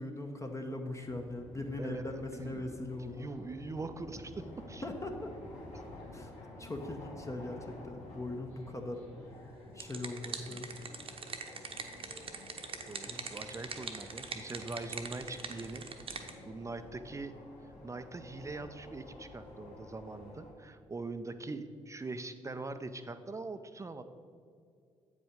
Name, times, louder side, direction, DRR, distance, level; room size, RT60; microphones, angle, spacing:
voice 1, 0.0-3.3 4.8-5.3 6.1-6.3 6.6-9.1 9.7-10.7 13.0-13.4, left 2 dB, 20° left, 3 dB, 0.8 m, -40 dB
sound 1, 0.9-20.5, left 1 dB, 55° left, 2.1 m, -51 dB
voice 2, 1.7-4.8 7.7-7.8 12.9-15.8 16.5-17.3 17.8-24.0, right 3 dB, 20° right, 10 dB, 0.5 m, -42 dB
sound 2, 9.5-16.3, right 5 dB, 35° right, 0.9 m, -43 dB
8.5 x 5.2 x 5.0 m, 2.4 s
figure-of-eight pair, 40°, 15 cm